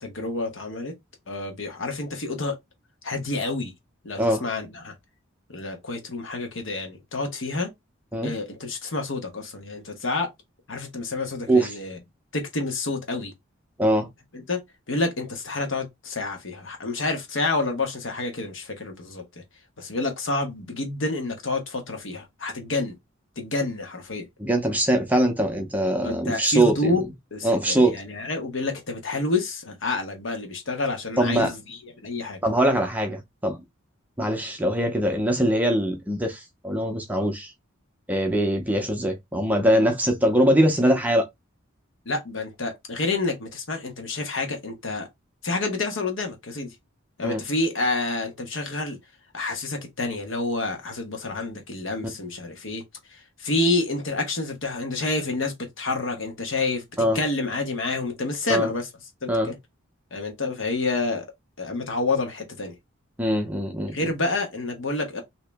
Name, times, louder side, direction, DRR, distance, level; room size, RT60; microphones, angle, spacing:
voice 1, 0.0-0.9 1.3-2.5 3.0-3.7 4.0-4.9 5.5-7.7 8.2-10.3 10.7-12.0 12.3-13.3 14.3-14.6 14.9-19.4 19.8-22.9 23.4-24.2 26.0-27.0 27.3-32.4 42.0-45.1 45.4-46.7 47.2-49.0 49.3-52.8 53.1-56.8 57.1-58.9 59.2-59.5 60.1-61.2 61.6-62.8 63.9-65.2, left 3 dB, 60° left, 1.1 m, -28 dB
voice 2, 24.4-27.0 27.4-28.0 31.2-31.5 32.4-33.6 34.2-37.5 38.1-41.3 47.2-47.4 57.0-57.2 58.5-58.7 59.3-59.5 63.2-64.0, right 1 dB, 10° right, 0.6 m, -22 dB
3.0 x 2.8 x 3.4 m
head